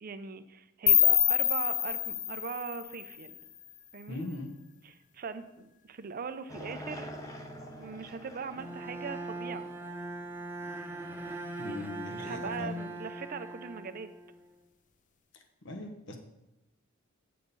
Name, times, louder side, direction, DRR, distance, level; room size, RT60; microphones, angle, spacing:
voice 1, 0.0-3.3 3.9-4.2 4.8-7.1 7.8-9.7 11.6-14.1, right 5 dB, 45° right, 10 dB, 0.5 m, -40 dB
sound 1, 0.9-3.8, left 10 dB, 40° left, 0.5 m, -27 dB
voice 2, 4.1-4.5 11.6-12.7 15.3-16.2, left 2 dB, 65° left, 5 dB, 1.0 m, -40 dB
sound 2, 6.5-10.9, equal, 15° left, 0.9 m, -46 dB
Bowed string instrument, 8.5-14.5, right 1 dB, 10° right, 0.9 m, -40 dB
8.5 x 6.2 x 5.4 m, 0.93 s
head